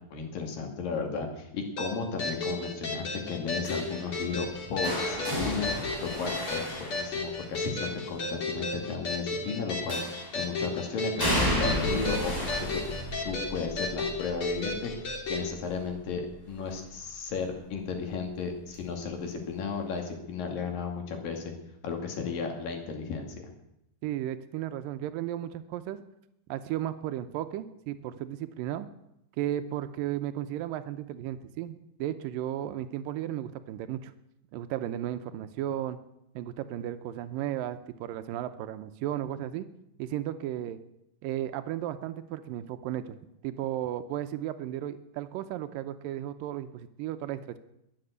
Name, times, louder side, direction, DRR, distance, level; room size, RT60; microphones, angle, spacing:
voice 1, 0.1-5.7 6.0-10.0 10.3-12.8 13.2-21.5 21.8-23.3, left 5 dB, 85° left, 3 dB, 4.1 m, -34 dB
sound 1, 1.8-15.5, left 2 dB, 45° left, 3.2 m, -34 dB
sound 2, 3.6-7.7 9.9-10.5 11.2-17.0 17.4-17.8 19.0-19.1, equal, 5° right, 5.4 m, -34 dB
voice 2, 24.0-26.0 26.5-28.9 29.4-34.1 34.5-36.0 36.4-39.7 40.0-40.8 41.2-43.2 43.4-47.6, right 12 dB, 90° right, 11 dB, 2.4 m, -34 dB
22.0 x 7.7 x 8.0 m, 0.82 s
omnidirectional pair, 3.9 m